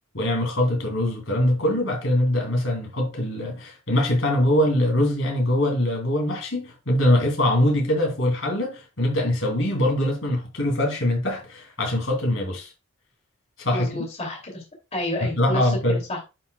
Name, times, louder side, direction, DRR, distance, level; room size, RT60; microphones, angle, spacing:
voice 1, 0.1-12.7 13.6-14.0 15.4-16.0, left 1 dB, 70° left, 3.1 m, -23 dB
voice 2, 13.7-14.6 14.9-16.2, left 1 dB, 30° left, 2.8 m, -30 dB
11.0 x 5.6 x 2.3 m
head